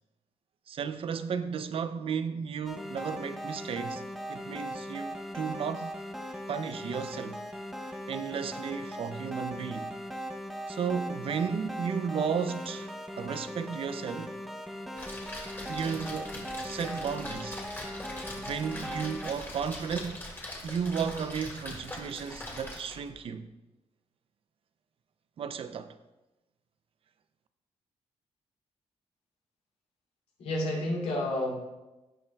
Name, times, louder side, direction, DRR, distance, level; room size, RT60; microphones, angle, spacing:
voice 1, 0.7-4.0 4.3-5.9 6.5-7.4 8.1-9.9 10.7-14.4 15.7-17.6 18.4-20.2 20.6-23.5 25.4-26.0, right 6 dB, 55° right, 0.5 m, -34 dB
sound 1, 2.6-19.3, equal, ahead, 0.8 m, -39 dB
Splash splatter, 14.9-23.1, left 1 dB, 20° left, 2.2 m, -42 dB
voice 2, 30.4-31.5, left 1 dB, 90° left, 2.7 m, -30 dB
17.0 x 5.7 x 2.3 m
cardioid pair, 120°, 11 cm